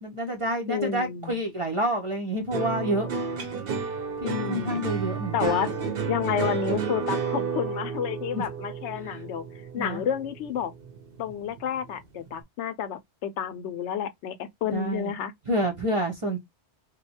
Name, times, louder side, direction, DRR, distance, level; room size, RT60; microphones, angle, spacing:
voice 1, 0.0-3.1 4.2-5.7 8.3-8.4 9.1-9.2 9.8-10.0 14.7-15.1 15.5-16.4, right 1 dB, 35° right, 0.6 m, -28 dB
voice 2, 0.7-1.4 4.2-4.8 5.3-5.7 6.1-9.4 9.7-10.7 11.2-15.3, left 8 dB, 80° left, 0.9 m, -30 dB
sound 1, 2.5-11.0 11.3-11.9, right 6 dB, 60° right, 0.9 m, -31 dB
2.7 x 2.2 x 4.1 m
omnidirectional pair, 1.2 m